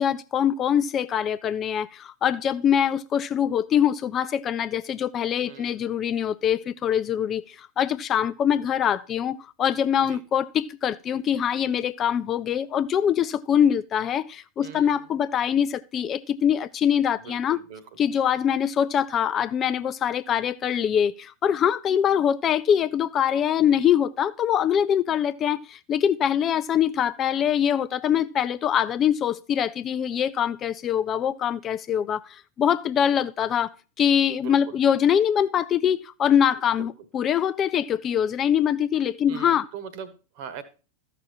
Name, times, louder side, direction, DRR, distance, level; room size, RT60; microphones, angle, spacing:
voice 1, 0.0-17.6 18.0-39.6, left 9 dB, 30° left, 0.4 m, -23 dB
voice 2, 5.4-6.0 10.0-10.2 14.6-15.1 17.1-17.8 23.6-24.0 34.3-34.8 36.7-36.9 39.3-40.6, right 6 dB, 45° right, 1.4 m, -41 dB
13.5 x 6.2 x 4.3 m
figure-of-eight pair, 90°, 0 cm